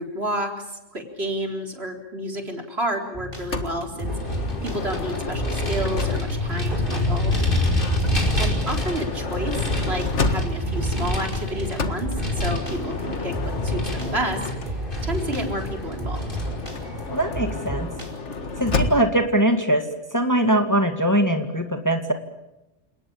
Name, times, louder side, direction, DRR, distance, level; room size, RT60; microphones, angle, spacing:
voice 1, 0.0-7.4 8.4-13.3 13.6-14.8 15.0-16.4, right 1 dB, 55° right, 3 dB, 4.4 m, -30 dB
sound 1, 3.1-19.0, right 1 dB, 25° right, 4.7 m, -34 dB
Motor vehicle (road) / Sliding door, 3.5-6.6 7.6-10.8 11.8-15.1 16.3-19.3, left 4 dB, 65° left, 2.1 m, -31 dB
Vehicle, 4.1-17.3, left 1 dB, 45° left, 5.7 m, -27 dB
voice 2, 17.1-17.9 18.6-19.8 20.1-22.1, right 1 dB, 15° left, 5 dB, 2.2 m, -21 dB
29.5 x 19.0 x 8.7 m, 0.94 s
omnidirectional pair, 1.3 m